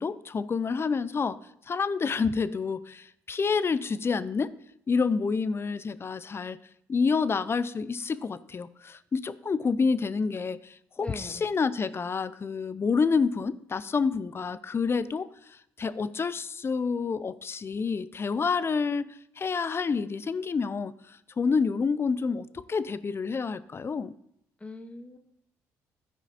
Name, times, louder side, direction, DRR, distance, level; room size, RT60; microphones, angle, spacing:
voice 1, 0.0-1.4 1.7-4.6 4.9-6.6 6.9-24.1, left 5 dB, 35° left, 15 dB, 0.5 m, -28 dB
voice 2, 11.0-11.5 24.6-25.2, left 2 dB, 15° left, 4 dB, 1.7 m, -41 dB
13.5 x 4.9 x 4.2 m, 0.74 s
supercardioid pair, 60°, 7 cm